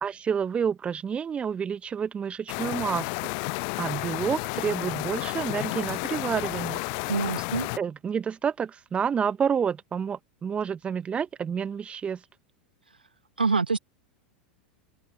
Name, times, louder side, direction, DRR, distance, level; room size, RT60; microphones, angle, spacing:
voice 1, 0.0-3.2 3.8-6.8 7.8-12.2, right 7 dB, 25° right, 1.2 m, -29 dB
sound 1, 2.5-7.8, left 40 dB or more, 50° left, 0.4 m, -31 dB
voice 2, 7.1-7.7 13.4-13.8, right 4 dB, 85° right, 1.8 m, -25 dB
open air
figure-of-eight pair, 85°, 5 cm